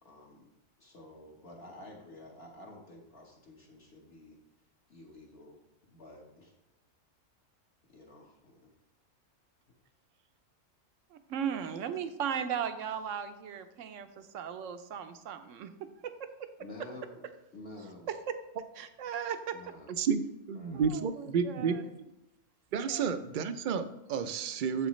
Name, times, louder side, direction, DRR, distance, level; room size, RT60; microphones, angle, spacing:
voice 1, 0.0-0.5 0.8-4.4 4.9-5.6 5.9-6.5 7.9-8.7 16.6-17.2 17.5-18.1 19.5-20.0 20.5-21.0, left 1 dB, 55° left, -2 dB, 1.4 m, -50 dB
voice 2, 11.1-16.5 18.1-18.4 18.8-19.6 20.7-21.9 22.9-23.1, right 8 dB, 75° right, 10 dB, 1.0 m, -37 dB
voice 3, 20.5-21.8 22.7-24.9, right 6 dB, 60° right, 11 dB, 0.5 m, -31 dB
7.8 x 7.4 x 3.1 m, 0.92 s
omnidirectional pair, 1.3 m